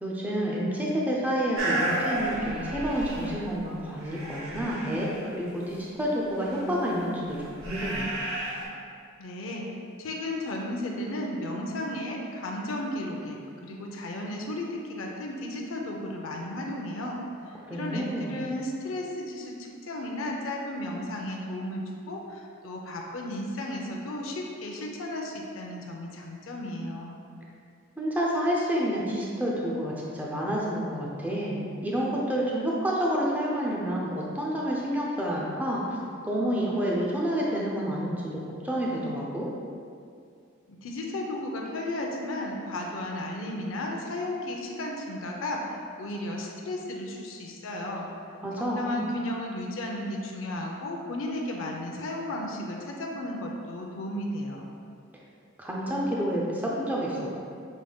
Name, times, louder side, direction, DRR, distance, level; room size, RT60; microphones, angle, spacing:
voice 1, 0.0-8.1 17.7-18.4 28.0-35.8 36.2-38.4 38.6-39.5 48.4-49.0 55.6-57.4, equal, 10° right, -4 dB, 0.5 m, -29 dB
sound 1, 1.6-3.7 4.0-5.2 6.4-8.7, right 1 dB, 80° right, 1.3 m, -33 dB
voice 2, 9.2-9.7 10.0-17.2 17.7-27.2 40.7-48.1 48.6-54.6, left 1 dB, 70° left, 0 dB, 0.5 m, -34 dB
6.2 x 3.6 x 2.3 m, 2.3 s
head